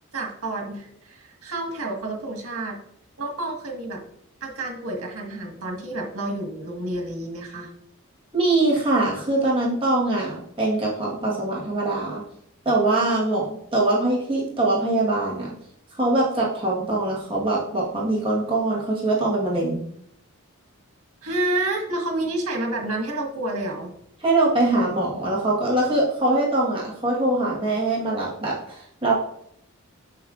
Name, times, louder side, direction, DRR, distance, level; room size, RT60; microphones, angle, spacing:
voice 1, 0.1-2.8 3.2-4.0 4.4-7.7 21.2-23.9, right 2 dB, 75° right, 1 dB, 1.6 m, -29 dB
voice 2, 8.3-12.2 12.6-15.5 16.0-19.8 24.2-29.2, right 2 dB, 25° right, -5 dB, 1.4 m, -23 dB
7.5 x 6.2 x 2.5 m, 0.70 s
head